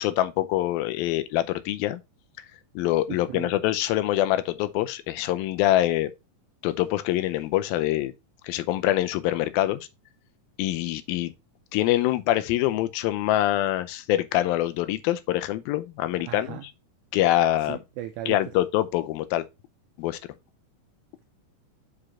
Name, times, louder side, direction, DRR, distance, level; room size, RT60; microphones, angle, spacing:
voice 1, 0.0-2.0 2.8-6.1 6.6-8.1 8.4-9.9 10.6-11.3 11.7-16.6 17.1-17.8 18.3-19.4 20.0-20.2, left 14 dB, 85° left, 2.5 m, -25 dB
voice 2, 3.1-3.5 16.2-16.7 17.7-18.4, right 13 dB, 85° right, 1.8 m, -36 dB
6.0 x 4.9 x 4.2 m
omnidirectional pair, 4.1 m